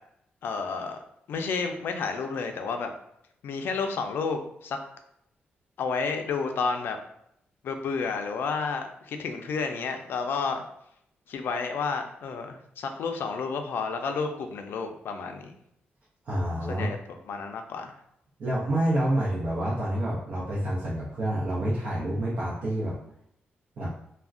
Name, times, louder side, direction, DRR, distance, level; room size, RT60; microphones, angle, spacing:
voice 1, 0.4-1.0 1.3-2.9 3.4-4.8 5.8-7.0 7.6-10.6 11.3-15.5 16.7-17.9, left 5 dB, 75° left, 6 dB, 0.4 m, -31 dB
voice 2, 16.3-16.9 18.4-23.0 23.8-23.9, right 1 dB, 55° right, -6 dB, 0.6 m, -28 dB
2.4 x 2.1 x 3.6 m, 0.75 s
wide cardioid pair, 155°, 4 cm